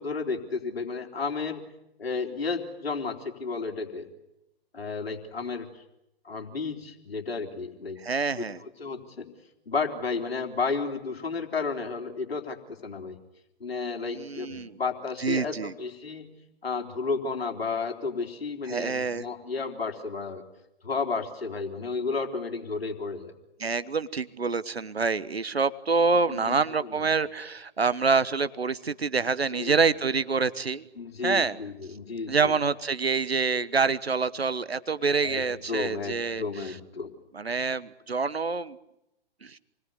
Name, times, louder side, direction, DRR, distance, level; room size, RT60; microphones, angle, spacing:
voice 1, 0.0-1.7 2.0-4.1 4.7-5.8 6.2-8.0 8.4-9.3 9.7-12.6 12.8-13.2 13.6-20.4 20.8-23.3 26.3-27.1 29.5-29.8 31.0-32.6 35.2-37.1, left 4 dB, 75° left, 3 dB, 4.0 m, -32 dB
voice 2, 8.0-8.6 14.1-14.7 15.2-15.7 18.7-19.2 23.6-30.8 31.2-31.6 32.3-36.4 37.3-38.8 39.4-39.6, right 4 dB, 85° right, 15 dB, 1.2 m, -26 dB
28.5 x 21.0 x 9.8 m, 0.87 s
figure-of-eight pair, 120°, 30 cm